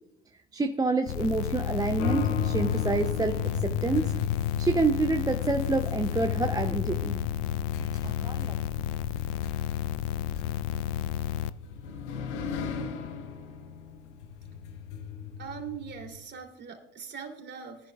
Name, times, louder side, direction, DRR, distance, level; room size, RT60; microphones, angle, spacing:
voice 1, 0.5-4.1 4.6-7.2 7.8-8.6, right 3 dB, 10° right, 6 dB, 0.6 m, -28 dB
sound 1, 1.1-11.5, left 11 dB, 60° left, 0.6 m, -32 dB
sound 2, 2.0-16.2, left 7 dB, 75° left, 1.1 m, -35 dB
voice 2, 15.4-17.9, right 7 dB, 30° right, 3 dB, 3.0 m, -41 dB
19.5 x 11.0 x 2.4 m, 0.87 s
hypercardioid pair, 80°, 36 cm